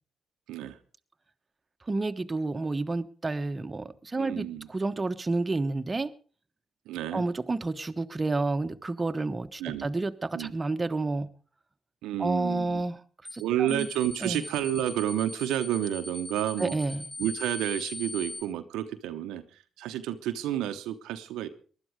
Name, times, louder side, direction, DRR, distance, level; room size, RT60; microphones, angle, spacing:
voice 1, 0.5-0.8 4.2-4.7 6.9-7.2 9.6-9.9 10.3-10.5 12.0-12.9 13.4-16.8 17.2-21.5, right 11 dB, 80° right, 8 dB, 0.9 m, -30 dB
voice 2, 1.9-6.1 7.1-11.3 12.2-13.0 13.3-13.4 13.7-13.9 14.2-14.4 16.6-17.0, right 3 dB, 30° right, 8 dB, 1.2 m, -30 dB
sound 1, 13.3-13.4 13.7-18.4, left 2 dB, ahead, 5.1 m, -40 dB
20.0 x 11.5 x 4.9 m, 0.40 s
hypercardioid pair, 45°, 0 cm